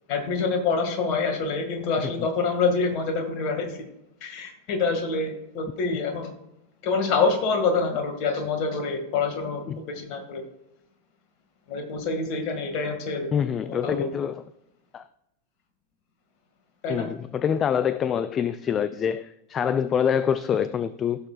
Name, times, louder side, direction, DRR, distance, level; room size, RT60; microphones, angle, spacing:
voice 1, 0.1-3.9 4.2-6.3 6.8-10.4 11.7-13.3 13.8-14.1 16.8-17.1, left 4 dB, 40° left, 1.9 m, -26 dB
voice 2, 13.3-14.4 14.9-15.0 16.9-21.3, left 8 dB, 25° left, 0.3 m, -26 dB
15.5 x 6.5 x 2.4 m
figure-of-eight pair, 90°, 0 cm